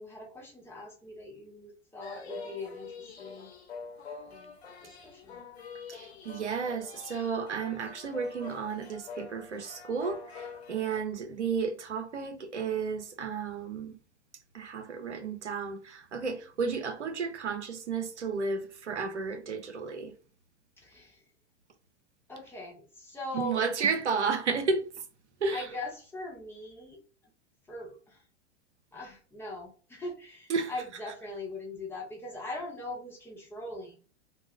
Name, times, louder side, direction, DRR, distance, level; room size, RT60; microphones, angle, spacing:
voice 1, 0.0-3.5 4.2-4.6 4.8-5.4 20.8-21.2 22.3-24.0 25.5-27.0 27.7-28.2 28.9-34.0, left 1 dB, 5° left, 0.6 m, -41 dB
sound 1, 2.0-11.0, left 5 dB, 65° left, 0.7 m, -45 dB
voice 2, 5.9-13.9 14.5-20.1 23.3-24.9 25.4-25.7 30.5-30.7, right 5 dB, 80° right, 0.6 m, -32 dB
2.4 x 2.1 x 3.4 m
figure-of-eight pair, 95°, 34 cm